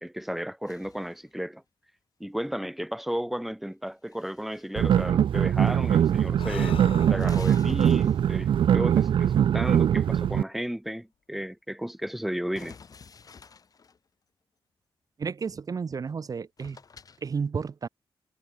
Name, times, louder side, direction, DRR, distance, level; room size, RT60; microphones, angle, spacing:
voice 1, 0.0-1.6 2.2-6.8 7.1-12.8, equal, ahead, 2.2 m, -33 dB
sound 1, 0.7-1.3 3.7-4.7 5.7-6.1 6.4-6.5 7.1-8.5 12.5-14.0 16.1-16.2 16.6-17.2, left 5 dB, 40° left, 2.9 m, -50 dB
sound 2, 4.8-10.4, right 9 dB, 65° right, 0.4 m, -22 dB
Breathing, 6.3-9.8, left 8 dB, 70° left, 2.4 m, -43 dB
voice 2, 15.2-16.8 17.2-17.9, right 5 dB, 40° right, 1.6 m, -32 dB
wide cardioid pair, 155°, 9 cm